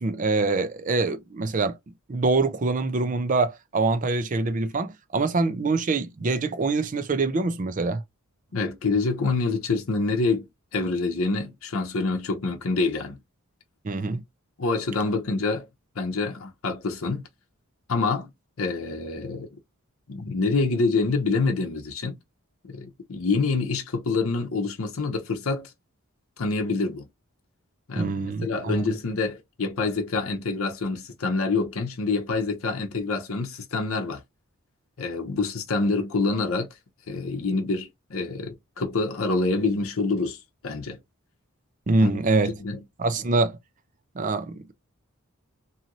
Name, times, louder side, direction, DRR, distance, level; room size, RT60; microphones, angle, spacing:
voice 1, 0.0-1.8 2.1-8.0 13.8-14.2 27.9-28.9 41.9-42.5 43.0-43.6 44.2-44.7, right 3 dB, 35° right, 0.5 m, -24 dB
voice 2, 8.5-10.5 10.7-13.2 14.6-15.7 16.0-17.2 17.9-18.3 18.6-19.5 20.1-22.2 22.6-25.7 26.4-27.1 27.9-34.2 35.0-36.7 37.1-40.4 40.6-41.0 42.0-42.2 42.5-42.8, left 3 dB, 70° left, 0.7 m, -26 dB
2.7 x 2.6 x 2.9 m
head